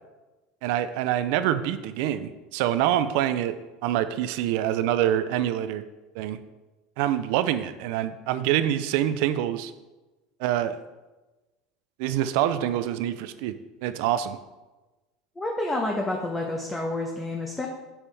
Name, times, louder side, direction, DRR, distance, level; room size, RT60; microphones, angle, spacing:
voice 1, 0.6-3.6 3.8-5.8 6.2-6.4 7.0-9.7 10.4-10.8 12.0-14.4, right 11 dB, 70° right, 11 dB, 0.4 m, -26 dB
voice 2, 15.4-17.7, left 2 dB, 10° left, 0 dB, 0.8 m, -29 dB
7.4 x 6.9 x 3.4 m, 1.1 s
supercardioid pair, 135°, 0 cm